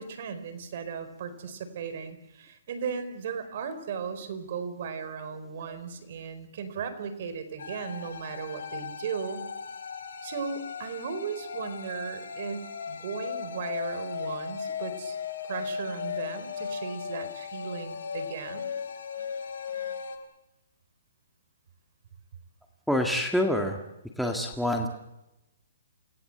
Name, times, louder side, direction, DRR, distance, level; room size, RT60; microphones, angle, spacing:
voice 1, 0.0-9.5 10.2-15.2 15.4-18.7, right 6 dB, 45° right, 9 dB, 4.5 m, -36 dB
sound 1, 7.6-20.2, left 6 dB, 80° left, 5.5 m, -37 dB
voice 2, 22.9-23.8 24.2-24.9, left 1 dB, ahead, 3 dB, 1.8 m, -26 dB
29.0 x 19.5 x 8.0 m, 0.91 s
hypercardioid pair, 165°, 0 cm